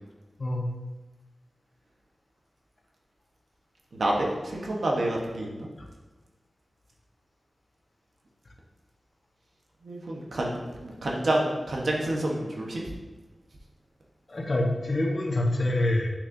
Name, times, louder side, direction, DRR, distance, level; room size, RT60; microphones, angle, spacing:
voice 1, 3.9-5.7 9.8-12.8, right 1 dB, 75° right, -1 dB, 1.0 m, -28 dB
voice 2, 14.3-16.1, left 1 dB, 50° left, -1 dB, 1.1 m, -26 dB
6.5 x 6.4 x 2.7 m, 1.2 s
wide cardioid pair, 95°, 0 cm